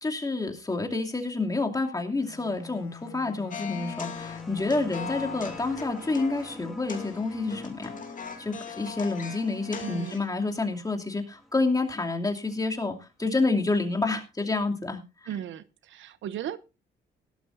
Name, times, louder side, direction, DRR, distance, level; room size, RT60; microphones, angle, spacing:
voice 1, 0.0-8.0 8.4-15.3, left 3 dB, 20° left, 2.7 m, -29 dB
Bowed string instrument, 2.1-5.9, left 7 dB, 80° left, 1.2 m, -45 dB
sound 1, 3.5-10.3, left 6 dB, 40° left, 2.5 m, -40 dB
sound 2, 3.6-12.8 14.0-14.1, left 1 dB, ahead, 2.2 m, -49 dB
voice 2, 9.8-10.2 15.3-16.6, right 10 dB, 75° right, 0.8 m, -36 dB
17.5 x 12.0 x 2.6 m
cardioid pair, 90°, 20 cm